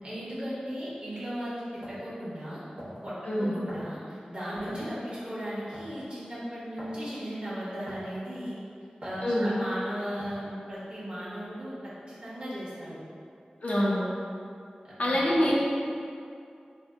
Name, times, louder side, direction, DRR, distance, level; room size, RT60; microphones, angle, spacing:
voice 1, 0.0-2.6 3.0-8.6 9.0-13.0 14.8-15.3, equal, 40° right, -9 dB, 1.0 m, -36 dB
sound 1, 1.8-2.0 2.8-3.1 3.7-4.0 4.7-4.9 5.7-6.0 6.8-7.0 7.9-8.2 9.0-9.2 10.2-10.5, equal, 85° right, 0.9 m, -43 dB
voice 2, 13.6-14.0 15.0-15.5, equal, 60° left, -6 dB, 0.5 m, -25 dB
2.7 x 2.1 x 3.4 m, 2.5 s
wide cardioid pair, 70°, 3 cm